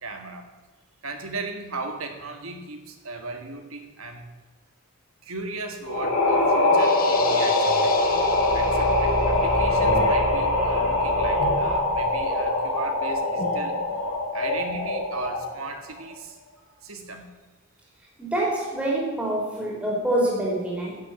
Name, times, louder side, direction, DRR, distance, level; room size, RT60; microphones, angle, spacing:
voice 1, 0.0-0.5 1.0-4.3 5.2-8.0 8.5-13.8 14.3-16.4 16.8-17.3, right 3 dB, 85° right, 5 dB, 1.8 m, -36 dB
sound 1, 5.9-15.6, left 2 dB, 80° left, 3.8 m, -23 dB
sound 2, 6.7-9.3, left 7 dB, 45° left, 0.9 m, -35 dB
Car / Engine, 7.9-12.5, right 1 dB, 70° right, 4.2 m, -33 dB
voice 2, 18.2-21.0, right 1 dB, 5° right, -4 dB, 3.5 m, -26 dB
11.5 x 6.9 x 9.0 m, 1.2 s
head